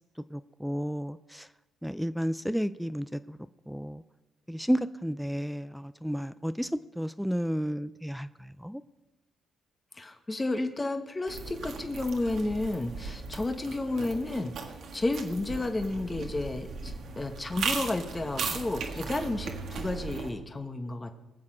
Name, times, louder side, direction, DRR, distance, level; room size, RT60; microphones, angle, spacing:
voice 1, 0.3-1.5 1.8-3.4 3.7-4.0 4.5-8.8, equal, ahead, 13 dB, 0.4 m, -32 dB
voice 2, 9.9-21.1, left 2 dB, 20° left, 6 dB, 1.2 m, -32 dB
sound 1, 11.3-20.3, right 5 dB, 65° right, 1.7 m, -37 dB
20.5 x 7.3 x 6.1 m, 1.0 s
cardioid pair, 90°, 0 cm